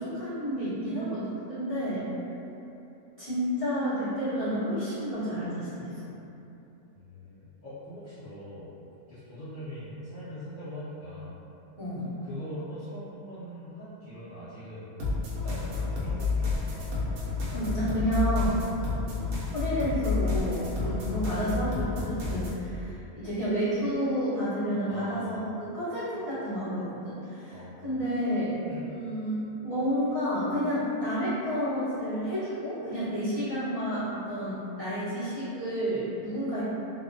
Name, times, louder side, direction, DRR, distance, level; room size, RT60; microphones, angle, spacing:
voice 1, 0.0-2.1 3.2-6.1 11.8-12.0 17.5-18.6 19.5-27.5 27.8-36.6, equal, 30° right, -16 dB, 0.7 m, -30 dB
voice 2, 6.9-8.8 9.1-11.4 12.0-14.9 15.4-16.9 20.8-21.0 24.9-25.4 27.5-28.0 28.7-28.9, equal, 60° left, -13 dB, 0.5 m, -42 dB
sound 1, 15.0-22.6, left 4 dB, 70° right, 1.0 m, -30 dB
2.7 x 2.1 x 2.6 m, 2.9 s
omnidirectional pair, 1.6 m